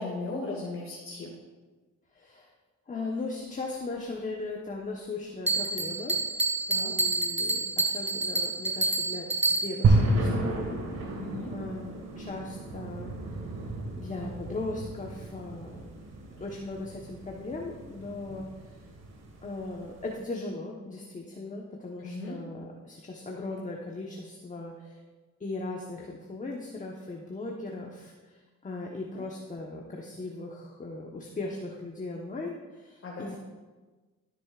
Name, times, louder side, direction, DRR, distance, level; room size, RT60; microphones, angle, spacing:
voice 1, 0.0-1.3 6.7-6.9 11.2-11.5 22.0-22.3 29.1-29.2 33.0-33.3, left 3 dB, 45° left, -3 dB, 2.0 m, -36 dB
voice 2, 2.1-2.5 2.9-6.2 6.8-11.1 11.5-13.1 14.0-15.9 16.4-18.5 19.4-25.0 25.4-33.4, left 2 dB, 25° left, -1 dB, 1.1 m, -38 dB
Bell, 5.5-10.0, right 3 dB, 20° right, 1.1 m, -28 dB
sound 1, 9.8-20.1, right 2 dB, 60° right, 1.9 m, -31 dB
13.0 x 8.2 x 2.5 m, 1.3 s
cardioid pair, 90°, 30 cm